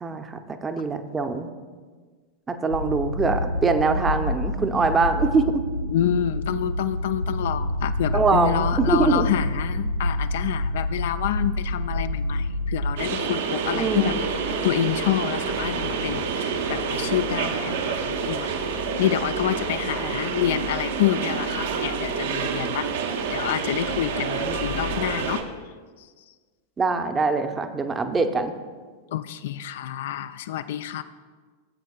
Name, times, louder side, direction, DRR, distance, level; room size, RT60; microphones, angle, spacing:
voice 1, 0.0-1.5 2.5-5.6 8.1-9.3 13.7-14.2 20.0-20.1 24.4-24.8 26.8-28.5, right 4 dB, 15° right, 7 dB, 0.7 m, -23 dB
sound 1, 2.7-13.0, left 1 dB, 85° right, 0.4 m, -27 dB
voice 2, 5.9-14.3 14.6-18.6 19.0-22.9 23.3-25.4 29.1-31.0, left 11 dB, 55° left, 12 dB, 0.3 m, -28 dB
sound 2, 13.0-25.4, right 5 dB, 60° right, 0.9 m, -28 dB
16.5 x 8.0 x 2.4 m, 1.5 s
figure-of-eight pair, 90°, 0 cm